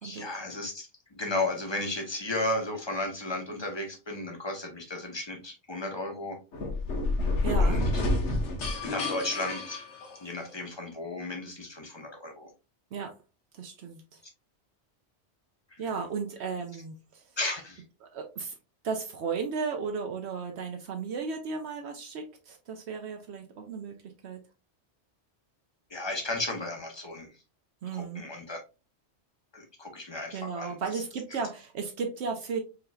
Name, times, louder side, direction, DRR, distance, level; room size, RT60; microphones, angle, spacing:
voice 1, 0.0-6.4 7.6-8.0 8.8-9.9 10.2-12.5 15.7-15.9 17.4-17.8 25.9-27.4 27.9-28.6 29.5-31.0, left 2 dB, 25° left, 0.9 m, -34 dB
sound 1, 6.5-10.5, left 2 dB, 85° left, 1.3 m, -28 dB
voice 2, 7.4-7.8 12.9-13.2 13.5-14.2 15.8-17.2 18.1-18.6 18.8-24.4 27.8-28.2 30.3-32.6, right 5 dB, 75° right, 0.9 m, -35 dB
4.8 x 2.9 x 2.3 m
omnidirectional pair, 1.2 m